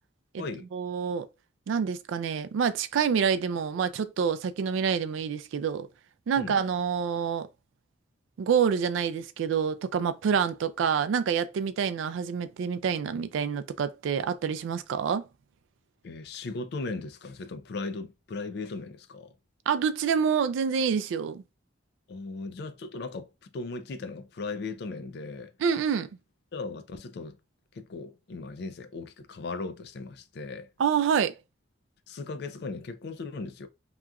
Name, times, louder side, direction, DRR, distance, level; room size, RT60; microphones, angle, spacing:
voice 1, 0.7-1.3 1.7-5.9 6.3-7.5 8.4-15.2 19.7-21.4 25.6-26.1 30.8-31.3, right 7 dB, 85° right, 0.3 m, -27 dB
voice 2, 16.0-19.3 22.1-25.5 26.5-27.4 27.7-30.7 32.1-33.7, left 3 dB, 55° left, 0.3 m, -37 dB
2.9 x 2.3 x 2.2 m
head